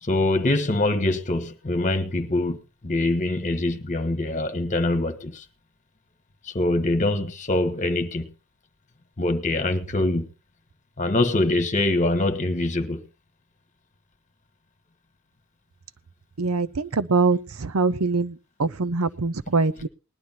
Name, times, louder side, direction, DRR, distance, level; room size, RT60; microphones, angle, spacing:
voice 1, 0.0-2.6 2.8-5.4 6.4-8.3 9.2-10.3 11.0-13.0, left 2 dB, 35° left, 1.4 m, -24 dB
voice 2, 16.4-19.9, right 3 dB, 80° right, 0.7 m, -23 dB
20.0 x 11.5 x 2.8 m
head